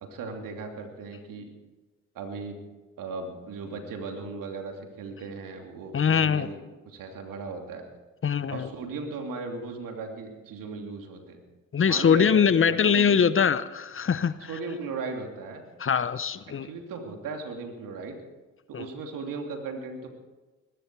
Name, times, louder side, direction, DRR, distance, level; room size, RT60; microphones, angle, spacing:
voice 1, 0.0-1.5 2.1-2.6 3.0-6.6 6.9-7.8 8.5-11.4 11.8-13.2 14.5-15.6 16.6-18.2 18.7-20.1, right 4 dB, 75° right, 3 dB, 2.8 m, -37 dB
voice 2, 5.9-6.5 8.2-8.7 11.7-14.5 15.8-16.7 18.7-18.8, left 7 dB, 40° left, 15 dB, 0.8 m, -22 dB
21.5 x 12.5 x 4.7 m, 1.2 s
supercardioid pair, 55°, 34 cm